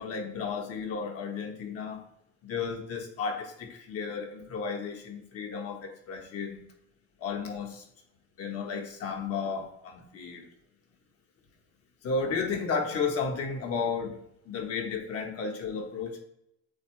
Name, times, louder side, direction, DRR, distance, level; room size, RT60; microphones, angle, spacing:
voice 1, 0.0-2.0 2.4-6.6 7.2-7.9 8.4-10.5 12.0-14.2 14.4-16.2, left 5 dB, 50° left, 1.4 m, -33 dB
8.2 x 3.5 x 3.3 m
cardioid pair, 120°, 30 cm